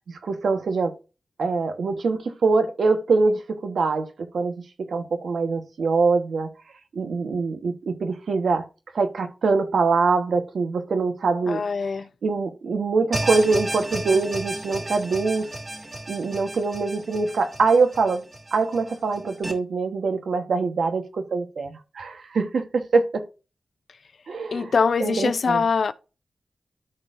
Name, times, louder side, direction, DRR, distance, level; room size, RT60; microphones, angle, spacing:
voice 1, 0.1-0.9 1.4-4.1 4.3-6.5 6.9-8.6 8.9-11.6 12.2-15.5 16.1-18.2 18.5-23.2 24.3-24.7 25.0-25.6, right 4 dB, 85° right, 1.2 m, -23 dB
voice 2, 11.5-12.1 24.5-25.9, left 5 dB, 70° left, 0.5 m, -23 dB
sound 1, 13.1-19.5, right 1 dB, 35° right, 2.0 m, -33 dB
13.0 x 4.4 x 2.6 m
wide cardioid pair, 75°, 0 cm